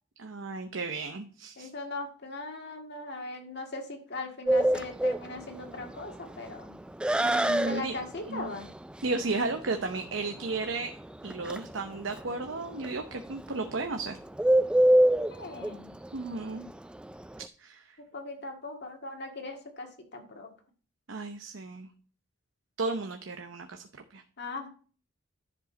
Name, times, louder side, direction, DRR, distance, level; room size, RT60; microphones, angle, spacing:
voice 1, 0.2-1.7 7.2-8.0 8.3-8.5 9.0-11.0 11.2-14.2 16.1-16.7 17.6-18.0 21.1-21.9 22.8-24.2, right 3 dB, 70° right, 6 dB, 0.8 m, -34 dB
voice 2, 1.6-6.7 7.6-8.7 15.3-15.8 18.1-20.5 24.4-24.7, left 2 dB, 60° left, 3 dB, 1.9 m, -39 dB
Bird, 4.5-17.5, right 1 dB, 5° right, 0.3 m, -27 dB
10.5 x 5.0 x 5.2 m, 0.40 s
head